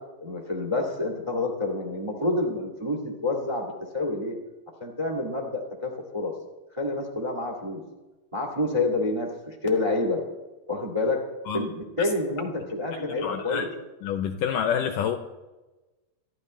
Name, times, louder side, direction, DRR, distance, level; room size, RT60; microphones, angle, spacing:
voice 1, 0.2-4.3 4.8-6.3 6.7-7.8 8.3-10.2 10.7-11.2 11.5-13.7, left 2 dB, 15° right, 1 dB, 1.3 m, -28 dB
voice 2, 13.0-13.7 14.0-15.2, left 8 dB, 75° left, 6 dB, 2.1 m, -28 dB
24.5 x 12.5 x 3.2 m, 1.1 s
omnidirectional pair, 4.3 m